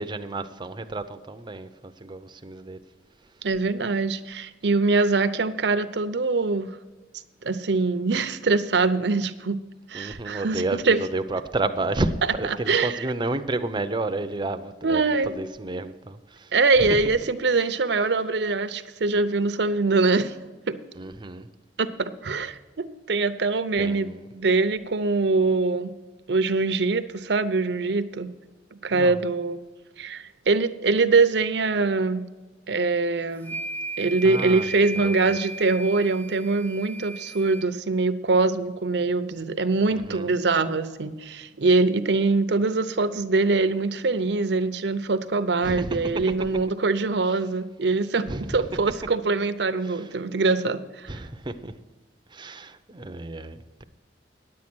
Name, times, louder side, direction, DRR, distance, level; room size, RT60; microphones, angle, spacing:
voice 1, 0.0-2.8 9.9-16.5 16.8-17.0 21.0-21.5 23.8-24.3 28.9-29.2 34.2-34.7 35.0-35.4 39.9-40.3 45.6-46.5 48.3-48.8 49.8-50.1 51.1-51.8 52.3-53.8, right 2 dB, 25° right, 0.6 m, -31 dB
voice 2, 3.4-6.7 7.4-9.6 9.9-11.0 12.7-13.0 14.8-15.4 16.5-20.4 20.7-20.8 21.8-24.1 24.3-25.9 26.3-28.3 28.8-29.6 30.0-32.2 32.7-33.6 34.0-48.3 48.5-51.1, right 3 dB, 70° right, 0.7 m, -23 dB
sound 1, 33.4-37.7, right 2 dB, 10° left, 0.8 m, -35 dB
10.0 x 8.6 x 6.1 m
head